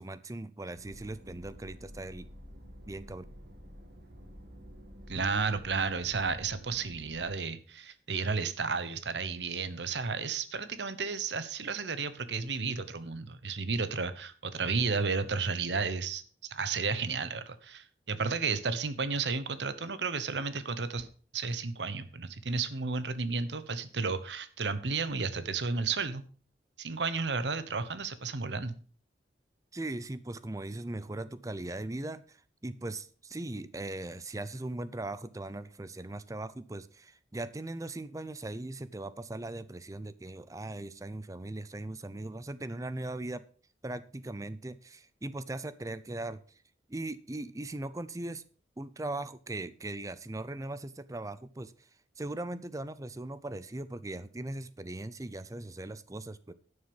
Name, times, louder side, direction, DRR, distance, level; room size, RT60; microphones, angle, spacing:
voice 1, 0.0-2.3 2.9-3.2 29.7-43.4 43.8-46.4 46.9-48.4 48.8-51.7 52.2-56.5, right 2 dB, 20° right, 15 dB, 0.6 m, -39 dB
sound 1, 0.7-7.3, equal, 65° right, 2.0 m, -50 dB
voice 2, 5.1-21.1 21.3-26.2 26.8-28.7, right 4 dB, 80° right, 13 dB, 1.0 m, -32 dB
11.5 x 6.7 x 5.3 m, 0.41 s
head